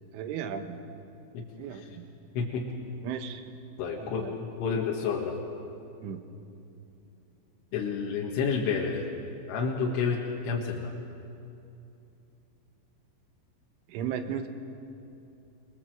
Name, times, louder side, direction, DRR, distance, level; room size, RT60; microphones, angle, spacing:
voice 1, 0.1-0.8 1.6-2.1 3.0-3.5 3.9-4.4 6.0-6.2 13.9-14.5, right 8 dB, 85° right, 7 dB, 3.7 m, -35 dB
voice 2, 2.4-2.7 3.8-5.4 7.7-9.1 9.5-10.9, left 5 dB, 90° left, -1 dB, 4.1 m, -30 dB
24.0 x 22.5 x 7.6 m, 2.7 s
omnidirectional pair, 5.5 m